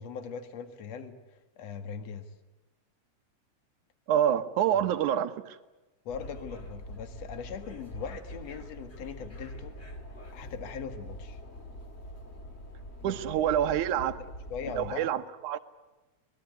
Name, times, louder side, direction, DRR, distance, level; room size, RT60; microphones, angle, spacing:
voice 1, 0.0-2.3 6.1-9.8 10.3-11.4 13.0-13.5 14.2-15.1, left 6 dB, 60° left, 10 dB, 2.9 m, -40 dB
voice 2, 4.1-5.6 13.0-14.2 14.7-15.6, right 10 dB, 90° right, 11 dB, 2.6 m, -27 dB
sound 1, 6.1-14.9, equal, 25° left, 2.2 m, -44 dB
24.0 x 21.0 x 9.5 m, 1.1 s
omnidirectional pair, 3.4 m